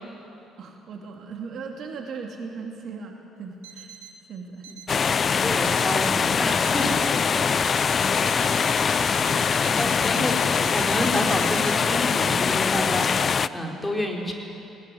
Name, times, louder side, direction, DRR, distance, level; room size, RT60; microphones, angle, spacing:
voice 1, 0.6-3.9 4.3-4.7 9.2-10.0, right 5 dB, 55° right, 2 dB, 2.5 m, -38 dB
Alarm, 3.6-4.2 4.6-5.2 5.6-6.2 6.6-7.2 7.6-11.8, right 8 dB, 75° right, 1.3 m, -44 dB
sound 1, 4.9-13.5, left 6 dB, 40° left, 0.6 m, -22 dB
voice 2, 5.4-7.1 9.8-14.3, left 1 dB, 10° left, 0 dB, 4.7 m, -29 dB
20.0 x 19.0 x 9.4 m, 2.8 s
hypercardioid pair, 50°, 0 cm